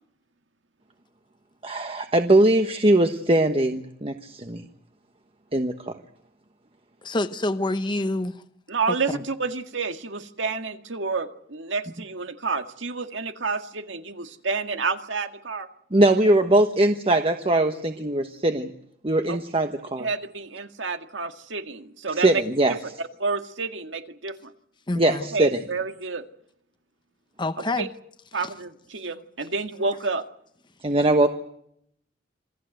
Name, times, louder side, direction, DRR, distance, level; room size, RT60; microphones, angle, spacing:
voice 1, 1.6-4.6 5.5-5.7 15.9-18.7 19.0-20.1 22.2-22.8 25.0-25.6 30.8-31.3, right 1 dB, 30° right, 1.2 m, -21 dB
voice 2, 7.0-8.4 9.1-9.2 24.9-25.3 27.4-27.9 28.4-28.5, left 2 dB, 25° left, 1.0 m, -27 dB
voice 3, 8.7-15.7 19.3-19.4 20.0-22.4 22.7-24.5 25.3-26.3 27.8-27.9 28.3-30.3, right 4 dB, 80° right, 1.9 m, -29 dB
27.0 x 18.0 x 7.9 m
head